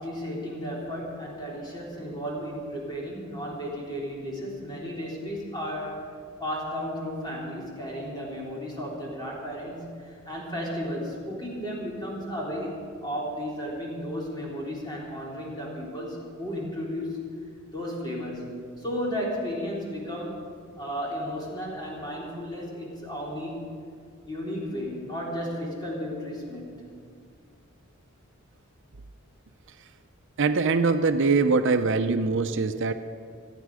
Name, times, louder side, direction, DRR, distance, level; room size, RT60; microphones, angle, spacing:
voice 1, 0.0-6.1 6.4-17.3 17.7-23.7 24.3-26.8, equal, 20° left, -4 dB, 3.9 m, -34 dB
voice 2, 30.4-32.9, right 4 dB, 60° right, 9 dB, 0.6 m, -23 dB
27.0 x 9.2 x 4.9 m, 2.1 s
head